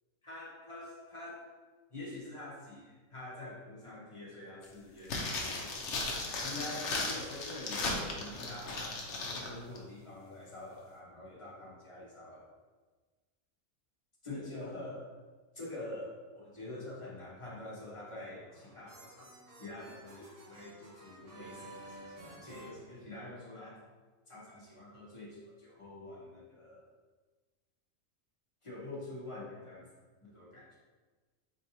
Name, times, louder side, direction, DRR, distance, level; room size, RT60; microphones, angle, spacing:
voice 1, 0.2-1.5 1.9-5.8 6.3-12.5 14.2-15.2 15.5-19.3 19.6-23.8 24.3-26.8 28.6-29.9 30.2-30.8, left 2 dB, 25° left, -6 dB, 1.0 m, -46 dB
sound 1, 5.0-9.5 9.8-9.9, left 3 dB, 60° left, 0.9 m, -36 dB
sound 2, 18.3-23.6, right 1 dB, 60° right, 1.2 m, -53 dB
4.5 x 3.7 x 2.7 m, 1.3 s
omnidirectional pair, 1.5 m